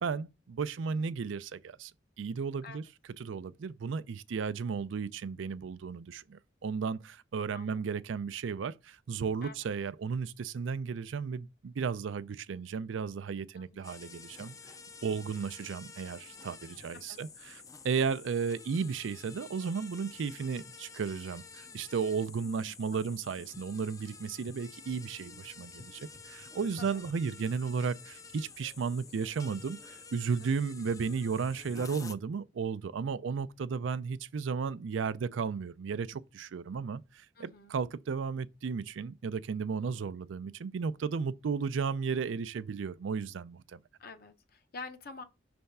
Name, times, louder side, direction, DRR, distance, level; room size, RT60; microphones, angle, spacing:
voice 1, 0.0-1.9 2.2-2.8 3.2-14.5 15.0-43.8, right 5 dB, 80° right, 0.4 m, -34 dB
voice 2, 13.5-13.9 16.9-17.2 17.9-18.1 26.8-26.9 30.4-30.7 37.4-37.8 44.0-45.2, left 4 dB, 55° left, 0.8 m, -47 dB
sound 1, 13.8-32.2, left 4 dB, 20° left, 0.4 m, -50 dB
5.5 x 3.4 x 5.3 m
head